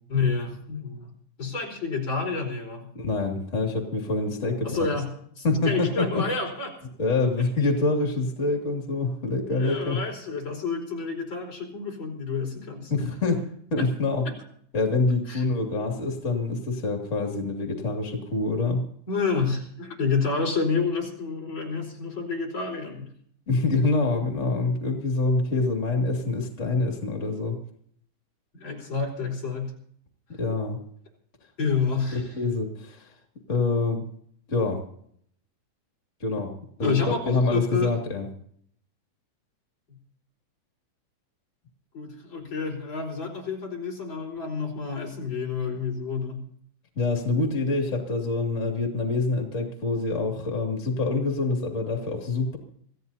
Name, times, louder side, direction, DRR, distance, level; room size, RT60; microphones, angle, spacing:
voice 1, 0.1-1.1 1.4-2.9 4.6-5.1 5.4-6.7 9.5-12.9 13.8-13.9 14.2-14.4 15.3-15.4 19.1-23.0 28.5-29.7 31.6-32.3 36.8-38.0 39.9-40.0 41.9-46.5, left 4 dB, 25° left, 0 dB, 4.5 m, -29 dB
voice 2, 2.9-4.8 5.4-6.2 7.0-10.0 12.9-13.4 13.7-14.2 14.7-18.8 23.5-27.6 30.4-30.8 32.1-33.1 33.5-34.0 34.5-34.8 36.2-36.5 36.8-38.2 46.9-52.6, left 3 dB, 55° left, 2 dB, 0.8 m, -26 dB
26.5 x 15.5 x 2.8 m, 0.64 s
omnidirectional pair, 5.6 m